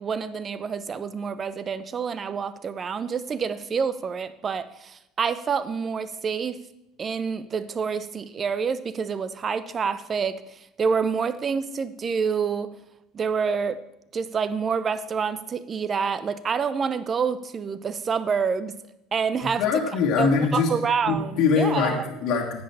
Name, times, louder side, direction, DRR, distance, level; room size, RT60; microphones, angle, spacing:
voice 1, 0.0-6.6 7.0-12.7 13.1-13.8 14.1-18.7 19.1-19.6 20.2-22.1, right 6 dB, 35° right, 14 dB, 0.8 m, -27 dB
voice 2, 19.6-20.7 21.1-22.6, left 5 dB, 55° left, 0 dB, 1.6 m, -23 dB
10.5 x 7.9 x 7.0 m, 0.89 s
figure-of-eight pair, 65°, 0 cm